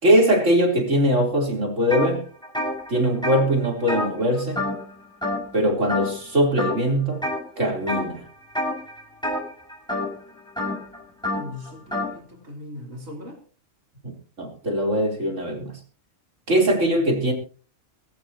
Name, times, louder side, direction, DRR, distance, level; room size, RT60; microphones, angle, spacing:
voice 1, 0.0-2.2 2.9-4.6 5.5-7.2 7.6-8.2 14.0-14.1 14.4-15.7 16.5-17.3, equal, 70° right, 4.3 m, -21 dB
sound 1, 1.9-2.1 2.4-4.9 5.2-5.6 5.9-6.3 6.6-7.4 7.9-8.2 8.5-12.1, left 1 dB, 5° left, 6.2 m, -28 dB
voice 2, 11.3-13.4, left 2 dB, 90° right, 4.3 m, -39 dB
22.5 x 15.0 x 2.9 m
omnidirectional pair, 1.3 m